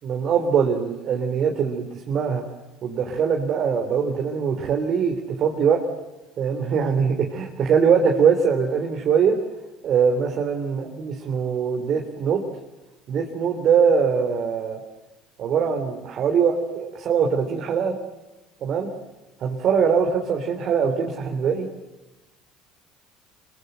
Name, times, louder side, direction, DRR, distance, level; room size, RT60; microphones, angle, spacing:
voice 1, 0.0-2.4 2.8-5.8 6.4-9.4 9.8-12.5 13.1-14.8 15.4-18.0 18.6-18.9 19.4-21.7, right 6 dB, 50° right, 2 dB, 3.4 m, -22 dB
27.5 x 23.0 x 7.9 m, 1.0 s
hypercardioid pair, 70°, 0 cm